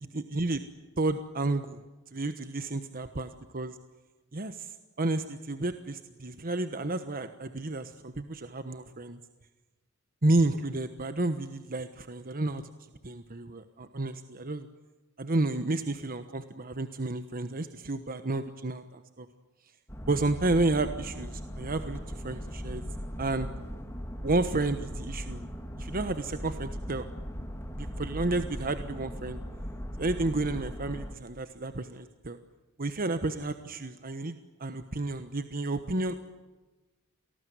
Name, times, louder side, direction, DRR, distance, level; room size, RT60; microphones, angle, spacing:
voice 1, 0.1-0.6 1.0-1.8 2.1-3.3 3.5-3.7 4.3-9.2 10.2-12.6 13.0-14.7 15.2-19.3 20.1-22.8 23.2-23.5 24.2-25.4 25.8-27.1 27.8-29.4 30.0-32.4 32.8-36.1, right 2 dB, 45° right, 9 dB, 1.2 m, -31 dB
sound 1, 19.9-31.1, equal, 15° left, 2.9 m, -38 dB
28.0 x 19.0 x 9.5 m, 1.2 s
head